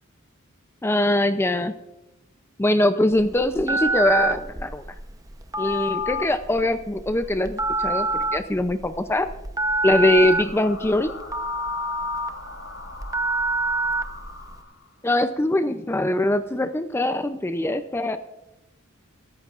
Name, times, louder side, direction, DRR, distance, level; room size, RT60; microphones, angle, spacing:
voice 1, 0.8-1.7 2.6-4.8 5.6-9.3 9.8-11.1 15.0-18.2, left 1 dB, 10° left, 9 dB, 0.5 m, -22 dB
Telephone, 3.1-14.6, right 2 dB, 15° right, 0.8 m, -27 dB
sound 1, 10.0-15.1, left 3 dB, 80° left, 5.5 m, -41 dB
23.5 x 13.5 x 2.5 m, 0.94 s
head